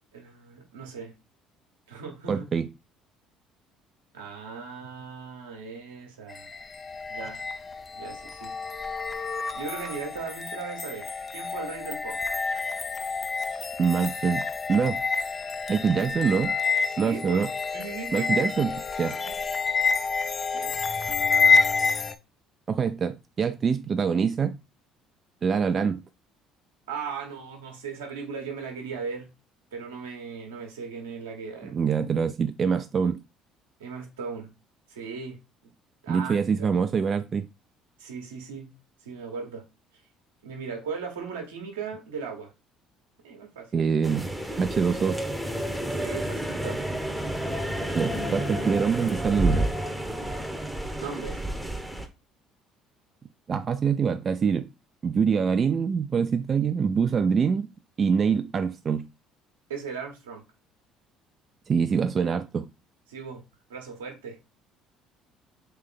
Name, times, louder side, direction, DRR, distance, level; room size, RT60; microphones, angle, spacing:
voice 1, 0.1-1.1 1.9-2.4 4.1-6.5 7.1-7.4 7.9-8.5 9.5-12.2 16.9-18.7 19.1-19.3 20.5-20.8 26.9-29.3 29.7-31.8 33.8-34.5 34.9-35.4 36.0-36.7 38.0-38.7 39.0-39.6 40.4-42.5 43.2-43.8 45.9-46.8 51.0-51.4 59.7-60.4 63.1-63.4 63.7-64.4, right 5 dB, 90° right, 1.1 m, -38 dB
voice 2, 2.3-2.7 13.8-14.4 14.7-15.0 15.7-16.5 17.0-17.5 18.1-19.2 22.7-24.6 25.4-26.0 31.7-33.2 36.1-37.4 43.7-44.3 44.6-45.2 47.9-49.7 53.5-54.7 55.0-57.7 58.0-59.1 61.7-62.7, right 6 dB, 40° right, 0.3 m, -25 dB
sound 1, 6.3-22.1, left 4 dB, 35° left, 0.4 m, -28 dB
sound 2, 44.0-52.1, right 1 dB, 5° right, 0.8 m, -30 dB
3.3 x 3.2 x 3.7 m
hypercardioid pair, 65°, 0 cm